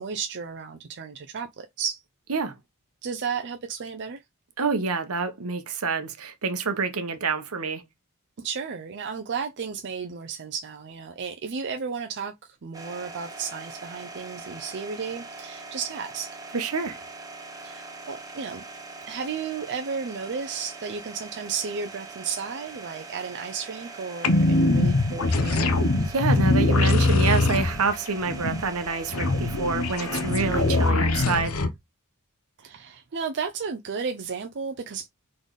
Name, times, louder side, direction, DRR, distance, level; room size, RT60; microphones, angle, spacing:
voice 1, 0.0-2.0 3.0-4.2 8.4-16.4 17.6-18.6 19.1-25.7 32.6-35.1, right 6 dB, 50° right, 0.5 m, -33 dB
voice 2, 4.6-7.8 16.5-17.0 26.0-31.6, right 4 dB, 75° right, 0.9 m, -27 dB
sound 1, 12.7-30.9, right 4 dB, 15° right, 0.9 m, -42 dB
sound 2, 24.2-31.7, left 2 dB, 65° left, 0.8 m, -22 dB
4.0 x 3.8 x 3.2 m
head